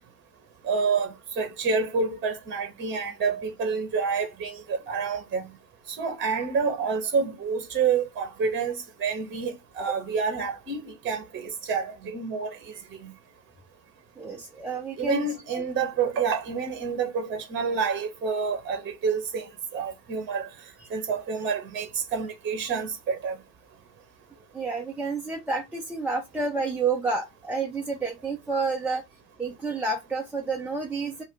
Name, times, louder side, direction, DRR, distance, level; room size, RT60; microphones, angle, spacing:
voice 1, 0.6-5.5 5.9-12.5 13.0-13.1 15.0-20.5 20.9-23.4, right 5 dB, 25° right, 1.0 m, -28 dB
voice 2, 14.2-15.2 15.5-15.6 24.5-29.0 29.4-31.2, right 4 dB, 5° right, 0.5 m, -29 dB
2.5 x 2.2 x 3.7 m
figure-of-eight pair, 75°, 48 cm